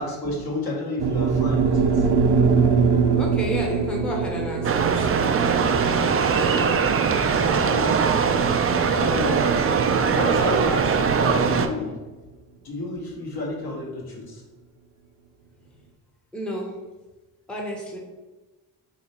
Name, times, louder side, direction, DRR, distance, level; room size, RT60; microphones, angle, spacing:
voice 1, 0.0-2.1 7.3-8.0 8.9-9.6 10.1-12.1 12.6-14.4, left 2 dB, 60° left, -3 dB, 1.3 m, -30 dB
sound 1, 1.0-9.2, right 5 dB, 70° right, 0.7 m, -23 dB
voice 2, 3.1-5.1 16.3-16.8 17.5-18.0, equal, ahead, -1 dB, 0.8 m, -31 dB
sound 2, 4.6-11.7, right 6 dB, 35° right, 0.4 m, -21 dB
3.2 x 3.0 x 4.2 m, 1.2 s
cardioid pair, 70°, 43 cm